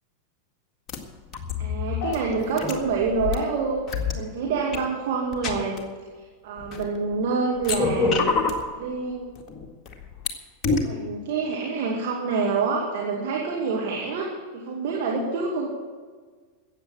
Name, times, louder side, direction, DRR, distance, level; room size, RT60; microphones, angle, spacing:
sound 1, 0.9-1.0 1.3-3.4 3.9-4.1 4.7-4.8 5.3-5.8 6.6-7.2 7.6-8.6 9.4-10.3 10.6-10.8, left 4 dB, 25° left, 1.8 m, -26 dB
voice 1, 1.6-5.8 6.4-8.3 8.8-9.3 10.8-14.3 14.5-15.7, right 4 dB, 50° right, -2 dB, 2.1 m, -27 dB
14.5 x 8.7 x 8.6 m, 1.5 s
figure-of-eight pair, 90°, 0 cm